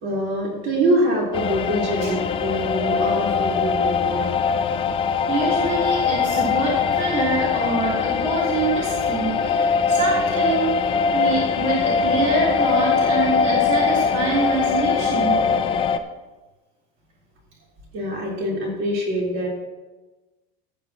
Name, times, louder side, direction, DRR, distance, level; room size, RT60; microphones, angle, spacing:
voice 1, 0.0-4.3 17.9-19.5, right 1 dB, 45° right, -3 dB, 4.0 m, -24 dB
sound 1, 1.3-16.0, left 5 dB, 20° left, 0.4 m, -22 dB
voice 2, 5.3-10.8 11.1-15.4, right 3 dB, 25° right, -7 dB, 3.4 m, -25 dB
16.0 x 9.7 x 3.0 m, 1.2 s
cardioid pair, 165°, 29 cm